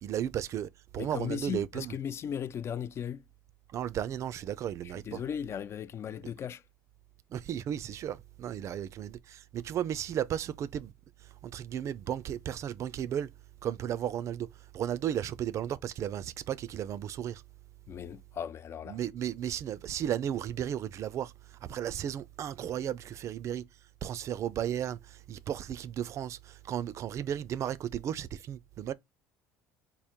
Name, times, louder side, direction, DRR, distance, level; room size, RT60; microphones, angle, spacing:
voice 1, 0.0-1.9 3.7-5.2 7.3-10.9 11.2-13.3 13.6-17.4 18.9-23.6 24.0-28.9, right 10 dB, 50° right, 0.4 m, -34 dB
voice 2, 1.0-3.2 4.8-6.6 17.9-19.0, left 8 dB, 40° left, 0.3 m, -37 dB
3.6 x 2.0 x 4.3 m
hypercardioid pair, 75°, 7 cm